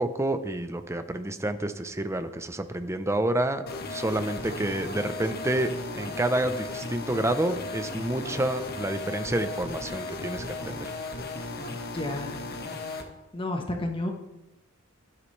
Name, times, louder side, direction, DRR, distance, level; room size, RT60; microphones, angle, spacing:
voice 1, 0.0-3.6 3.9-10.9, right 1 dB, 15° right, 9 dB, 0.7 m, -29 dB
sound 1, 3.7-13.0, left 3 dB, 50° left, 1.5 m, -36 dB
voice 2, 11.9-12.4 13.3-14.1, left 1 dB, 25° left, 3 dB, 1.2 m, -31 dB
16.0 x 11.5 x 3.3 m, 0.95 s
head